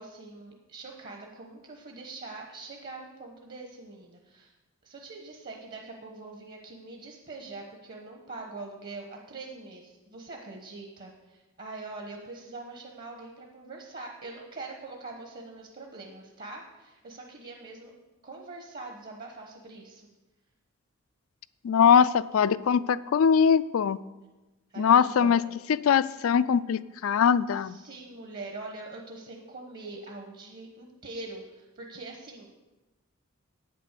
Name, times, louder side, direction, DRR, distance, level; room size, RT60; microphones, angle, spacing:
voice 1, 0.0-4.5 4.8-17.9 18.2-20.0 24.7-25.4 27.6-32.5, right 3 dB, 45° right, 2 dB, 1.1 m, -43 dB
voice 2, 21.6-24.0 24.8-25.4 25.7-27.8, left 7 dB, 75° left, 17 dB, 0.4 m, -22 dB
8.7 x 7.7 x 6.6 m, 1.1 s
head